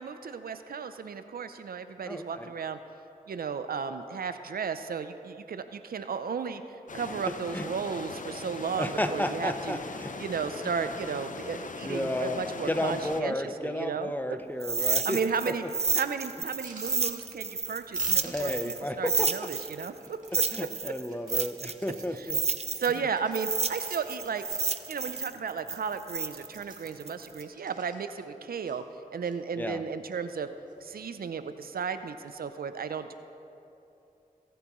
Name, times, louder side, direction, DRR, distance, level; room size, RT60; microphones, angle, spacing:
voice 1, 0.0-2.8 3.3-9.8 10.2-14.1 14.8-15.6 15.9-20.9 22.1-22.3 22.7-24.4 24.9-28.8 29.1-30.5 30.8-33.1, right 6 dB, 85° right, 10 dB, 0.5 m, -34 dB
voice 2, 2.1-2.5 7.5-7.6 8.7-10.1 11.8-12.4 12.7-15.2 18.2-19.3 20.5-22.4 29.6-29.8, left 1 dB, 10° left, 8 dB, 0.8 m, -32 dB
sound 1, 6.9-13.2, left 4 dB, 60° left, 0.6 m, -40 dB
sound 2, 14.6-18.8 19.1-23.0 23.3-27.4, right 4 dB, 45° right, 0.6 m, -30 dB
sound 3, 16.5-17.7 17.9-20.6 21.0-22.2 22.5-25.0 25.4-25.5 25.7-26.0 26.2-28.3 28.6-29.3 29.9-30.4 30.6-31.2 32.0-32.3, right 2 dB, 60° right, 2.0 m, -52 dB
22.0 x 8.0 x 3.1 m, 2.8 s
cardioid pair, 45°, 15 cm